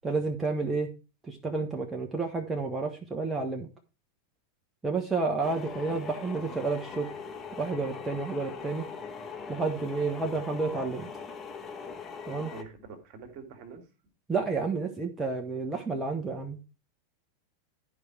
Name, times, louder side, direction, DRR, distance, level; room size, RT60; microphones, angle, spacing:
voice 1, 0.0-0.9 1.3-3.7 4.8-7.1 7.6-8.9 9.5-11.1 12.2-12.5 14.3-16.6, right 4 dB, 10° right, 1 dB, 1.3 m, -30 dB
sound 1, 5.4-12.6, left 5 dB, 25° left, 1.4 m, -41 dB
voice 2, 12.5-13.9, right 5 dB, 45° right, 7 dB, 2.3 m, -45 dB
11.5 x 5.0 x 4.6 m, 0.31 s
figure-of-eight pair, 90°, 0 cm